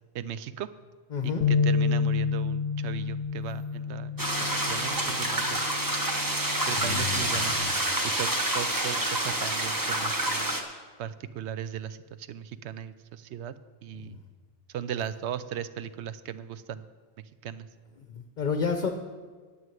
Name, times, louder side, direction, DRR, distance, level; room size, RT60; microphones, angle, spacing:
voice 1, 0.1-0.7 1.5-5.6 6.7-7.5 8.2-10.5 11.0-13.5 13.8-14.2 14.7-16.8 17.4-17.7, right 9 dB, 85° right, 14 dB, 0.9 m, -37 dB
voice 2, 1.1-1.5 6.8-7.7 14.0-14.2 18.1-18.9, left 5 dB, 50° left, 6 dB, 0.9 m, -31 dB
sound 1, 1.4-7.7, left 5 dB, 75° left, 0.9 m, -30 dB
sound 2, 4.2-10.6, right 1 dB, 20° right, 1.0 m, -28 dB
9.6 x 7.0 x 9.1 m, 1.5 s
omnidirectional pair, 1.1 m